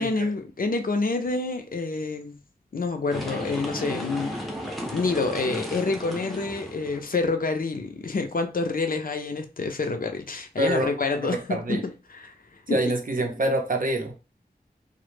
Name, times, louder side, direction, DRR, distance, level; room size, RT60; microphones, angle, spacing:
voice 1, 0.0-2.4 2.7-4.4 4.9-11.8 12.1-12.3 12.7-12.9, left 3 dB, 60° left, 0.4 m, -27 dB
sound 1, 3.1-7.1, equal, ahead, 0.6 m, -34 dB
voice 2, 10.6-10.9 11.2-11.9 12.7-14.1, right 1 dB, 55° right, 0.5 m, -26 dB
2.1 x 2.0 x 3.0 m
wide cardioid pair, 60°, 17 cm